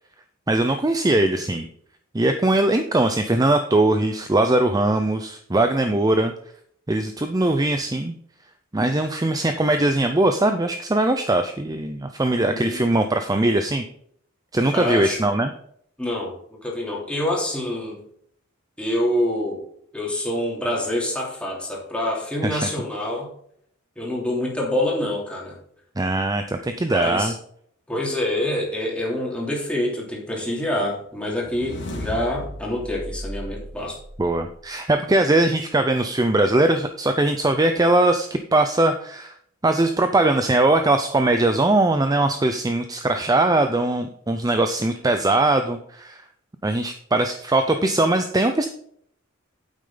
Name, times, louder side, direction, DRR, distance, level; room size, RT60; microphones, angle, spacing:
voice 1, 0.5-1.7 2.1-6.3 6.9-8.1 8.7-13.8 14.5-15.5 22.4-22.6 26.0-27.3 34.2-39.3 39.6-46.2 46.6-48.7, right 2 dB, 15° right, 7 dB, 0.5 m, -21 dB
voice 2, 12.4-13.0 14.7-15.2 16.0-18.0 18.8-19.6 19.9-23.3 24.0-25.6 26.8-27.3 27.9-34.0, left 1 dB, 5° left, -3 dB, 3.1 m, -26 dB
sound 1, 31.2-34.5, left 1 dB, 60° left, 2.8 m, -35 dB
9.1 x 8.5 x 3.9 m, 0.65 s
head